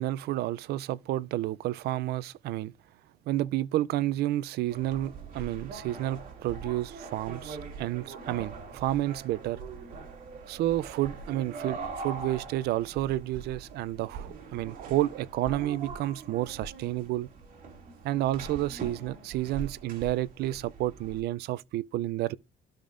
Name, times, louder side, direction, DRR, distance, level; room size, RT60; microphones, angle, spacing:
voice 1, 0.0-2.7 3.3-9.6 10.5-17.3 18.0-22.4, right 15 dB, 70° right, 0.4 m, -30 dB
sound 1, 4.7-21.2, right 4 dB, 55° right, 2.5 m, -42 dB
12.5 x 5.1 x 2.5 m
cardioid pair, 110°, 17 cm